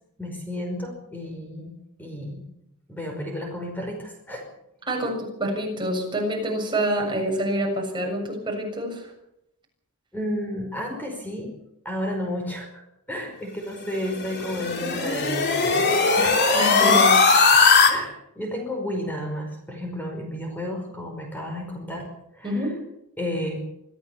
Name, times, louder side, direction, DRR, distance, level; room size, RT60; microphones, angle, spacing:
voice 1, 0.2-1.7 2.0-2.4 2.9-4.5 10.1-11.5 11.9-12.8 13.1-16.4 16.8-17.2 17.9-22.1 22.3-22.7 23.2-23.6, left 1 dB, 10° left, 2 dB, 5.2 m, -32 dB
voice 2, 4.9-9.1 16.5-17.0 17.6-17.8 22.4-22.8, right 1 dB, 20° right, 1 dB, 7.1 m, -27 dB
sound 1, 13.9-17.9, left 4 dB, 50° left, 3.5 m, -19 dB
25.5 x 15.5 x 7.1 m, 0.81 s
head